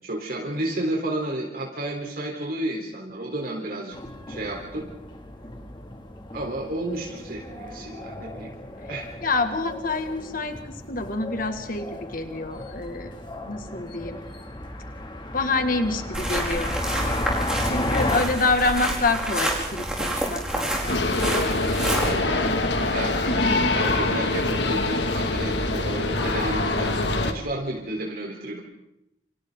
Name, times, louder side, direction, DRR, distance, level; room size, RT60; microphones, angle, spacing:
voice 1, 0.0-4.0 4.3-4.9 6.3-8.5 8.9-9.1 22.0-22.6 22.9-23.3 23.7-28.6, right 1 dB, 60° right, -1 dB, 4.1 m, -31 dB
sound 1, 3.9-18.2, left 1 dB, 30° left, 2.7 m, -34 dB
voice 2, 9.2-13.1 13.4-14.2 15.3-16.7 17.6-21.0 23.2-23.7, left 3 dB, 55° left, 6 dB, 2.2 m, -27 dB
sound 2, 16.1-22.1, right 1 dB, 5° right, 5.3 m, -28 dB
sound 3, 20.9-27.3, left 2 dB, 85° left, 2.3 m, -24 dB
29.5 x 28.0 x 4.0 m, 0.84 s
head